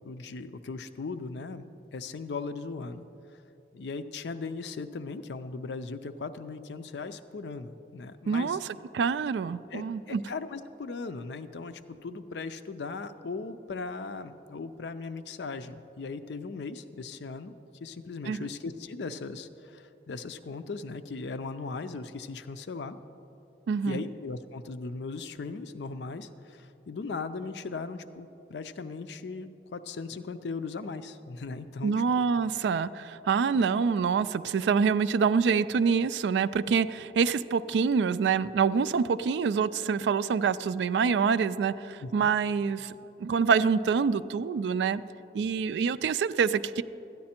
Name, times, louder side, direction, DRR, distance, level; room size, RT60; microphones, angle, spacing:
voice 1, 0.0-3.1 3.7-8.6 9.7-17.5 17.8-23.0 23.8-31.9 33.5-33.7 42.0-42.3, left 4 dB, 85° left, 11 dB, 0.5 m, -38 dB
voice 2, 8.3-8.7 8.9-10.2 18.3-18.5 23.7-24.0 31.8-42.9 43.2-45.0 45.3-46.8, right 6 dB, 85° right, 15 dB, 0.3 m, -26 dB
13.0 x 9.5 x 4.3 m, 2.9 s
head